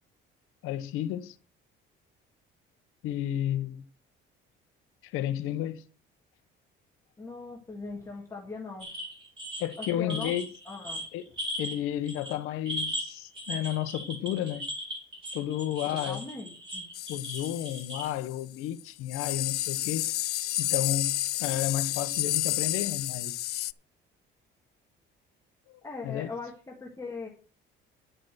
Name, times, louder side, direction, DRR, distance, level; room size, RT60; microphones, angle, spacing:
voice 1, 0.6-1.4 3.0-3.8 5.0-5.8 9.6-10.5 11.1-11.3 11.6-14.7 15.3-16.2 17.1-20.1 20.6-23.4 25.7-26.3, left 12 dB, 85° left, 1.1 m, -32 dB
voice 2, 7.2-8.9 9.8-10.3 10.7-11.1 15.9-16.8 25.8-27.3, left 3 dB, 15° left, 1.9 m, -40 dB
sound 1, 8.8-11.8 12.0-12.4 12.7-18.1, equal, 25° right, 4.2 m, -37 dB
sound 2, 16.9-18.4 18.8-18.9 19.1-23.7, left 16 dB, 50° left, 0.4 m, -31 dB
10.5 x 6.7 x 6.3 m
cardioid pair, 170°, 21 cm